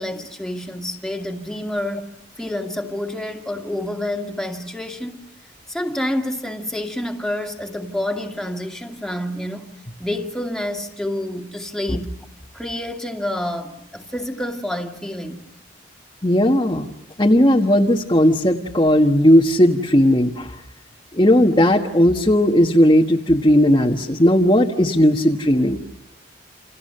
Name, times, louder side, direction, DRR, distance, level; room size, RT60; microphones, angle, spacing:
voice 1, 0.0-5.3 5.7-9.7 10.0-12.1 12.5-15.4, left 1 dB, 5° left, 2.1 m, -28 dB
voice 2, 16.2-16.9 17.2-20.5 21.1-25.9, equal, 25° left, 1.4 m, -16 dB
29.5 x 28.5 x 6.7 m
head